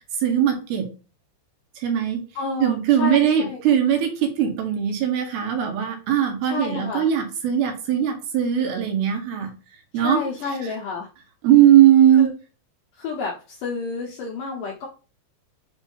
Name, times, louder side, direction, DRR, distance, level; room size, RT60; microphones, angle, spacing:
voice 1, 0.2-0.9 1.8-2.2 2.6-9.5 9.9-10.2 11.4-12.3, right 10 dB, 70° right, 4 dB, 2.7 m, -19 dB
voice 2, 2.4-3.6 6.4-7.1 9.9-11.1 12.1-12.3 13.0-14.9, left 4 dB, 80° left, -2 dB, 1.9 m, -30 dB
7.4 x 2.6 x 5.4 m, 0.34 s
omnidirectional pair, 5.2 m